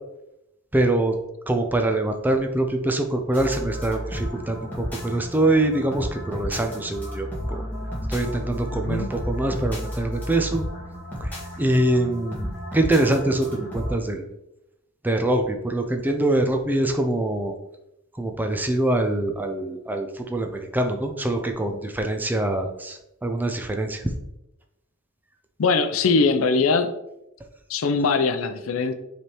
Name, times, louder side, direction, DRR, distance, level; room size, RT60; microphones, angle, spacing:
voice 1, 0.7-1.1 1.5-7.6 8.1-10.6 11.2-14.2 15.0-17.5 18.2-24.1, right 1 dB, 10° right, 4 dB, 0.4 m, -24 dB
sound 1, 3.3-13.9, equal, 10° left, 1.7 m, -33 dB
voice 2, 8.7-9.1 25.6-26.9 27.7-28.9, left 4 dB, 85° left, 9 dB, 0.5 m, -21 dB
5.3 x 3.4 x 3.0 m, 0.87 s
head